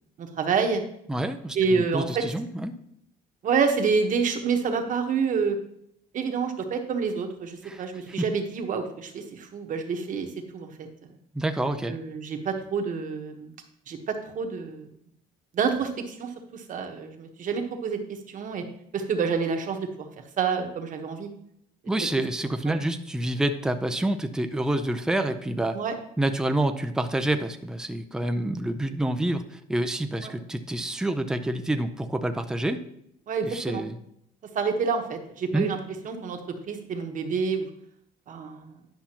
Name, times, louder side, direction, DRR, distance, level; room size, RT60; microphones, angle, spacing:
voice 1, 0.2-0.8 1.5-2.2 3.4-5.6 6.1-10.3 10.5-10.9 11.9-13.5 13.9-14.9 15.5-18.0 18.3-18.6 18.9-20.1 20.4-21.3 22.7-22.8 25.7-25.9 30.2-30.3 33.3-33.8 34.5-35.8 36.0-36.4 36.7-37.7 38.3-38.7, right 5 dB, 50° right, 5 dB, 1.2 m, -28 dB
voice 2, 1.1-2.7 7.6-7.8 8.2-8.3 11.3-12.0 21.9-25.8 26.2-32.8 33.4-34.0 35.5-35.7, right 1 dB, 5° right, 7 dB, 0.5 m, -27 dB
10.5 x 5.6 x 2.9 m, 0.72 s
cardioid pair, 110°, 17 cm